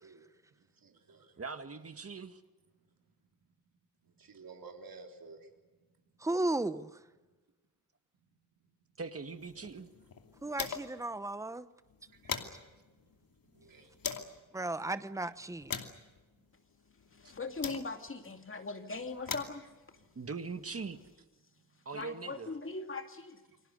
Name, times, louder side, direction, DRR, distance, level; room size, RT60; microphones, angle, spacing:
voice 1, 0.6-1.5 3.0-3.3 4.0-6.3 7.2-7.3 8.2-8.3 9.6-9.8 10.4-10.5 12.1-13.2 13.5-14.6 15.2-15.4 19.3-19.4 20.7-20.8 21.5-21.9, right 4 dB, 80° right, 3.9 m, -56 dB
voice 2, 1.4-2.4 9.0-9.9 17.2-17.3 20.2-21.0 21.9-22.5, right 4 dB, 45° right, 1.9 m, -41 dB
voice 3, 6.2-7.0 10.4-11.7 14.5-15.7, right 2 dB, 10° right, 0.9 m, -34 dB
sound 1, 9.3-11.1 11.4-11.5 11.8-14.4 15.0-18.2 18.9-21.1, left 6 dB, 80° left, 2.7 m, -43 dB
voice 4, 17.1-19.7 21.9-23.5, left 3 dB, 35° left, 2.5 m, -40 dB
29.0 x 24.5 x 6.6 m
wide cardioid pair, 170°, 34 cm